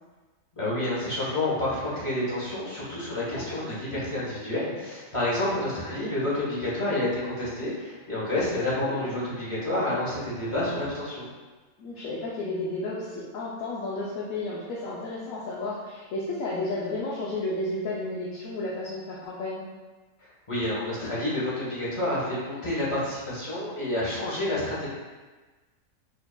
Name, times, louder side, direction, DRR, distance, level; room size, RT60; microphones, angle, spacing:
voice 1, 0.5-11.3 20.5-24.9, left 1 dB, 25° left, -9 dB, 1.0 m, -29 dB
voice 2, 3.3-3.7 5.4-5.8 9.0-9.1 11.8-19.6, left 2 dB, 80° left, -6 dB, 1.0 m, -32 dB
4.9 x 2.7 x 2.2 m, 1.3 s
omnidirectional pair, 1.4 m